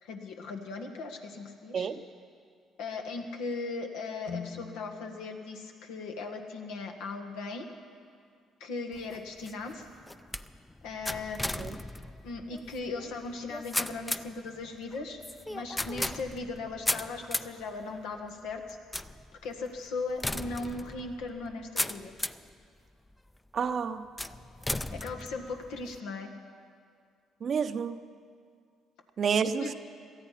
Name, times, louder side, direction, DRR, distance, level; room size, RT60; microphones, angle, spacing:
voice 1, 0.0-1.9 2.8-7.7 8.6-9.9 10.8-11.6 12.2-15.2 15.5-18.8 19.4-22.1 24.9-26.3 29.4-29.7, left 3 dB, 80° left, 4 dB, 1.5 m, -38 dB
sound 1, 4.2-8.3, left 6 dB, 65° left, 2.3 m, -47 dB
sound 2, 8.9-22.5 23.1-23.6 24.2-26.0, left 1 dB, 10° left, 0.5 m, -37 dB
voice 2, 23.5-24.0 27.4-28.0 29.2-29.7, right 6 dB, 50° right, 12 dB, 0.7 m, -29 dB
18.5 x 13.0 x 5.8 m, 2.3 s
supercardioid pair, 60°, 0 cm